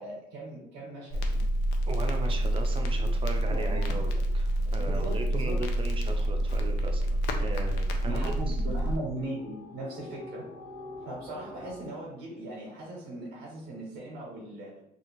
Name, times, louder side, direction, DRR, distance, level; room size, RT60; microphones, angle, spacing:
voice 1, 0.0-1.4 2.7-3.1 3.5-4.0 4.8-5.6 8.0-10.4 11.0-14.8, right 1 dB, 90° right, -3 dB, 0.8 m, -39 dB
Crackle, 1.1-9.0, right 1 dB, 80° left, 0.5 m, -28 dB
voice 2, 1.9-8.6, right 3 dB, 30° right, 4 dB, 0.4 m, -38 dB
sound 1, 8.6-11.8, left 2 dB, 60° left, 0.8 m, -46 dB
2.6 x 2.3 x 3.0 m, 0.78 s
cardioid pair, 110°, 17 cm